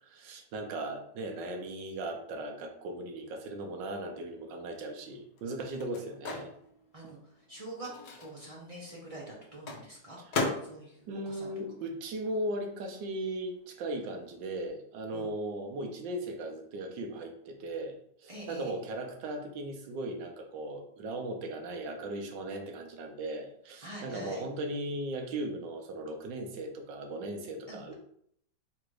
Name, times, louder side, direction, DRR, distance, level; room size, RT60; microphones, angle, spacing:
voice 1, 0.0-6.5 11.1-27.9, right 1 dB, 75° right, 3 dB, 1.4 m, -37 dB
Microwave oven, 4.4-12.5 12.8-14.7, left 3 dB, 65° left, 1.2 m, -40 dB
voice 2, 7.5-7.9 8.2-11.5 15.1-15.3 18.3-18.7 23.8-24.4 27.7-27.9, right 1 dB, 50° right, -4 dB, 0.4 m, -45 dB
3.8 x 2.5 x 4.7 m, 0.68 s
omnidirectional pair, 2.0 m